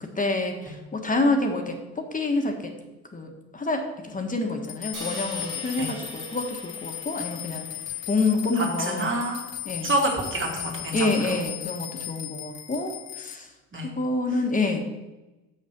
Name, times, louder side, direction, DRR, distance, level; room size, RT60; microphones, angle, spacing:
voice 1, 0.0-2.7 3.1-7.7 8.1-9.1 9.6-9.9 10.9-13.5 13.8-14.8, left 2 dB, 25° left, 4 dB, 1.3 m, -27 dB
sound 1, 4.6-13.4, left 11 dB, 60° left, 1.0 m, -37 dB
Crash cymbal, 4.9-9.1, right 3 dB, 90° right, 2.1 m, -45 dB
voice 2, 8.6-9.4 9.8-11.1 13.7-13.9, right 1 dB, 40° right, 0 dB, 2.5 m, -27 dB
6.5 x 6.4 x 6.0 m, 1.1 s
cardioid pair, 90°, 30 cm